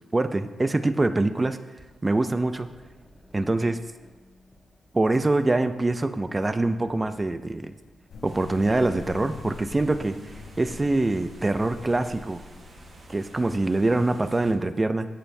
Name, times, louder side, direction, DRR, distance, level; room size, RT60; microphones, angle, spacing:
voice 1, 0.1-1.6 2.0-2.7 3.3-3.8 4.9-7.7 8.2-10.2 10.6-12.4 13.1-15.1, right 2 dB, 20° right, 10 dB, 0.5 m, -24 dB
sound 1, 1.8-9.1, left 1 dB, 5° left, 1.3 m, -55 dB
sound 2, 8.1-13.6, left 4 dB, 70° left, 0.9 m, -44 dB
sound 3, 8.2-14.5, right 2 dB, 50° right, 1.3 m, -49 dB
16.5 x 6.8 x 2.7 m, 1.2 s
cardioid pair, 110°, 0 cm